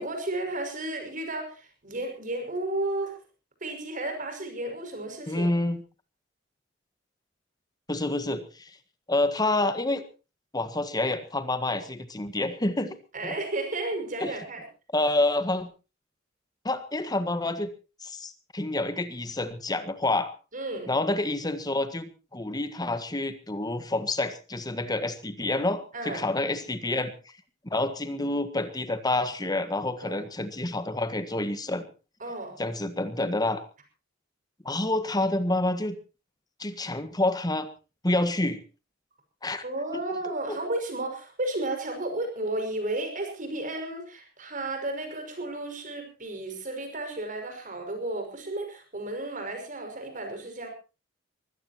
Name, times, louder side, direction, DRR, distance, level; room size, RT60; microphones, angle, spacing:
voice 1, 0.0-3.2 3.6-5.5 13.1-14.6 20.5-20.9 25.9-26.3 30.0-30.3 32.2-32.6 39.6-50.7, right 2 dB, 45° right, 4 dB, 6.0 m, -33 dB
voice 2, 5.3-5.8 7.9-8.7 9.1-10.0 10.5-12.9 13.2-13.3 14.2-14.3 14.9-15.7 16.6-17.7 18.0-20.3 20.9-27.1 27.6-31.9 32.6-33.6 34.6-35.9 36.6-37.7 38.0-38.6 39.4-39.6 39.9-40.6, left 2 dB, 20° left, 11 dB, 1.6 m, -28 dB
23.5 x 17.0 x 3.0 m, 0.32 s
head